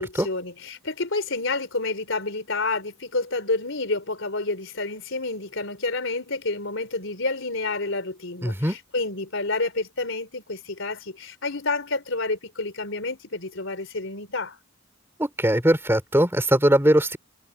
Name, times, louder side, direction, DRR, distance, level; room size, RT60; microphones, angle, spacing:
voice 1, 0.0-14.6, left 3 dB, 65° left, 4.2 m, -29 dB
voice 2, 8.4-8.8 15.2-17.2, right 1 dB, 10° right, 3.1 m, -20 dB
head